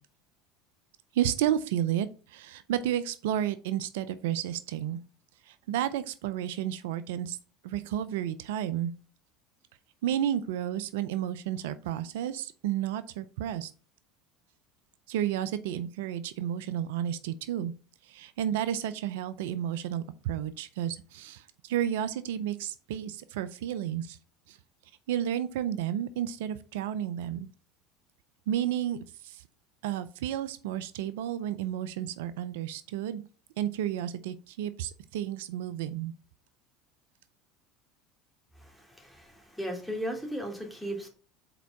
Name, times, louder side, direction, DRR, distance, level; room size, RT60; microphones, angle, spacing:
voice 1, 1.1-5.0 5.5-7.4 7.6-8.9 10.0-13.7 15.1-17.7 18.0-24.2 24.5-24.6 25.1-27.5 28.5-29.4 29.8-33.2 33.6-36.1, right 11 dB, 75° right, 13 dB, 0.5 m, -32 dB
voice 2, 38.6-41.1, equal, ahead, 1 dB, 2.4 m, -36 dB
5.0 x 4.5 x 5.7 m, 0.38 s
hypercardioid pair, 85°, 0 cm